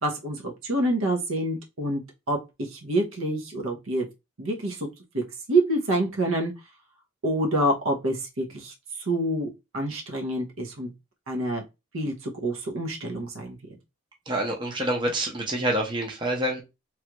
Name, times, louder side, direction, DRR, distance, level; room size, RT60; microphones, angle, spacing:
voice 1, 0.0-2.0 2.3-4.1 4.4-4.9 5.1-5.2 5.5-6.5 7.2-10.9 11.3-11.6 11.9-13.6, right 1 dB, 70° right, 0.8 m, -27 dB
voice 2, 14.3-16.6, right 1 dB, 20° right, 0.7 m, -27 dB
3.2 x 2.3 x 2.9 m
head